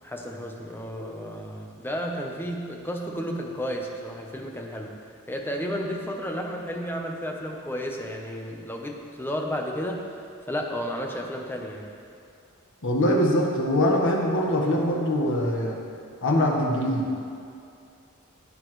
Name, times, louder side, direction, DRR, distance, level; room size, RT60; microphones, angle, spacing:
voice 1, 0.0-5.0 5.3-10.1 10.5-11.9, equal, 10° left, 1 dB, 0.9 m, -32 dB
voice 2, 12.8-15.8 16.2-17.1, equal, 60° left, -1 dB, 1.5 m, -23 dB
15.0 x 8.4 x 3.2 m, 2.5 s
head